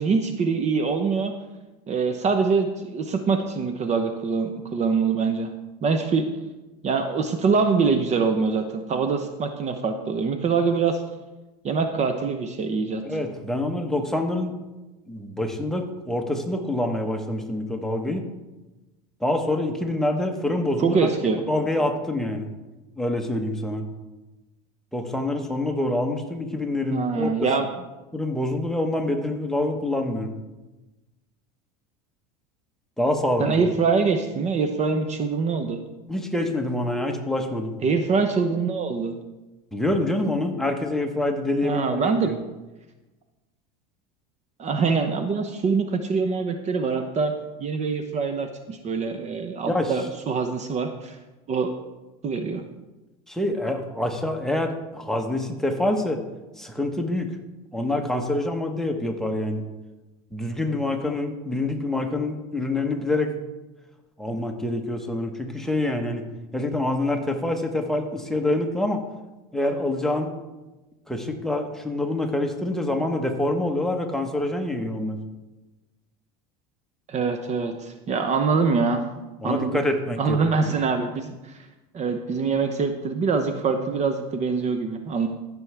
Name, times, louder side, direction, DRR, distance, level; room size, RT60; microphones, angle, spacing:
voice 1, 0.0-1.3 1.9-5.5 5.8-6.3 6.8-11.0 11.6-13.2 20.8-21.4 26.9-27.7 33.4-35.8 37.8-39.2 41.6-42.3 44.6-47.3 47.6-51.2 51.5-51.7 52.2-52.6 77.1-79.0 79.4-79.8 80.2-81.7 81.9-85.3, right 5 dB, 35° right, 6 dB, 0.8 m, -24 dB
voice 2, 13.0-14.5 15.1-18.2 19.2-22.5 23.0-23.9 24.9-27.5 28.1-30.3 33.0-33.7 36.1-37.8 39.7-42.4 49.7-49.9 53.3-56.2 56.6-57.3 57.7-59.6 60.3-63.3 64.2-66.3 66.5-69.0 69.5-70.3 71.1-75.2 79.4-80.7, left 1 dB, ahead, 2 dB, 1.2 m, -26 dB
15.0 x 6.2 x 3.4 m, 1.1 s
supercardioid pair, 105°, 20 cm